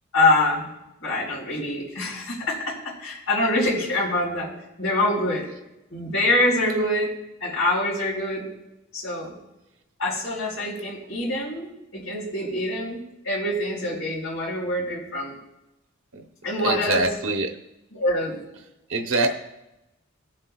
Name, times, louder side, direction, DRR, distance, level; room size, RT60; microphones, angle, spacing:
voice 1, 0.1-0.7 1.0-4.5 4.8-5.5 5.9-7.1 7.4-8.4 8.9-9.3 10.0-15.3 16.4-17.2 17.9-18.4, left 1 dB, 90° left, -8 dB, 3.9 m, -25 dB
voice 2, 16.6-17.5 18.9-19.3, right 2 dB, 65° right, 3 dB, 0.9 m, -23 dB
18.5 x 7.6 x 2.3 m, 0.93 s
head